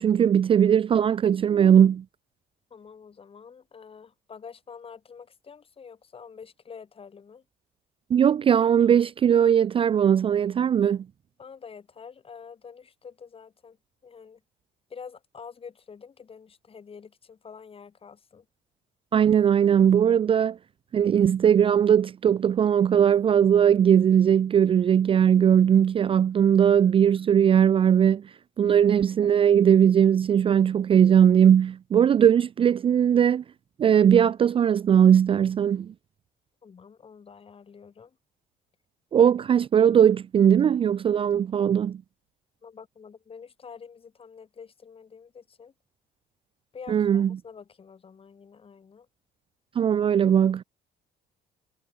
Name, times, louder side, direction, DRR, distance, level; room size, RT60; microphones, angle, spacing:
voice 1, 0.0-2.0 8.1-11.0 19.1-20.6 20.9-28.2 28.6-33.4 33.8-35.9 39.1-42.0 46.9-47.3 49.8-50.6, right 8 dB, 35° right, 0.4 m, -19 dB
voice 2, 2.7-7.4 11.4-13.8 14.0-14.4 14.9-18.5 36.6-38.2 42.6-45.7 46.7-49.1, left 6 dB, 35° left, 3.5 m, -47 dB
cardioid pair, 110°, 17 cm